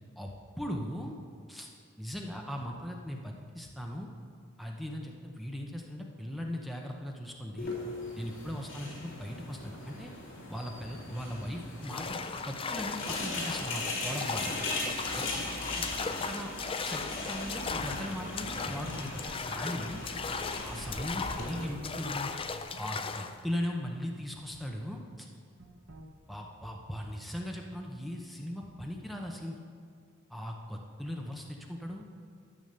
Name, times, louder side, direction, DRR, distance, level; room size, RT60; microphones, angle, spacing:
voice 1, 0.2-1.2 1.5-1.7 2.0-4.1 4.6-7.8 8.1-10.1 10.5-14.6 15.1-15.2 16.0-16.5 16.8-20.0 20.6-22.3 22.8-25.3 26.3-29.6 30.3-32.1, equal, ahead, 0 dB, 0.8 m, -39 dB
sound 1, 7.6-21.7, left 2 dB, 65° left, 2.7 m, -39 dB
sound 2, 11.8-23.4, left 4 dB, 25° left, 0.5 m, -37 dB
sound 3, 17.6-24.1 25.6-26.0, equal, 85° right, 1.5 m, -53 dB
12.5 x 7.2 x 6.6 m, 2.1 s
head